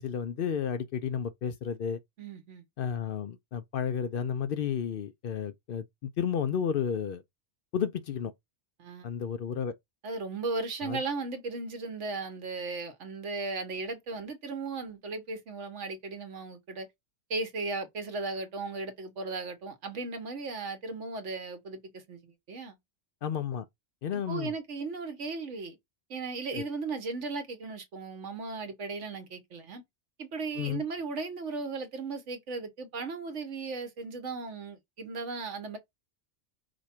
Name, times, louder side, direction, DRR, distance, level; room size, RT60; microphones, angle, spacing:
voice 1, 0.0-2.0 2.8-7.2 7.7-8.3 9.0-9.7 10.8-11.0 23.2-23.7 24.0-24.5 26.5-26.6 30.6-30.8, left 8 dB, 60° left, 0.6 m, -32 dB
voice 2, 2.2-2.6 8.8-9.1 10.0-16.9 17.3-22.8 24.1-25.8 26.1-29.8 30.2-35.8, right 3 dB, 85° right, 1.4 m, -36 dB
4.9 x 2.3 x 4.2 m
omnidirectional pair, 1.2 m